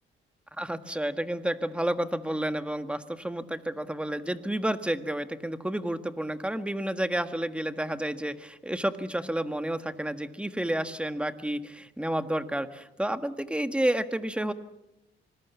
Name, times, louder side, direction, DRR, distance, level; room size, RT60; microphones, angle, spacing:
voice 1, 0.6-14.5, right 1 dB, 5° right, 9 dB, 1.6 m, -30 dB
26.0 x 20.5 x 7.1 m, 0.85 s
cardioid pair, 90°, 20 cm